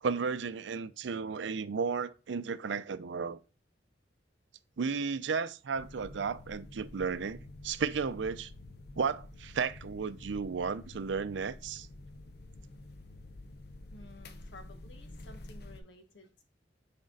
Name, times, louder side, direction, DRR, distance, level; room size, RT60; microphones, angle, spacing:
voice 1, 0.0-3.4 4.8-8.5 9.0-11.9, right 5 dB, 80° right, 0.5 m, -34 dB
sound 1, 5.7-15.8, left 2 dB, 60° left, 0.7 m, -49 dB
voice 2, 13.9-16.4, left 2 dB, 85° left, 1.2 m, -54 dB
6.4 x 4.4 x 3.8 m
head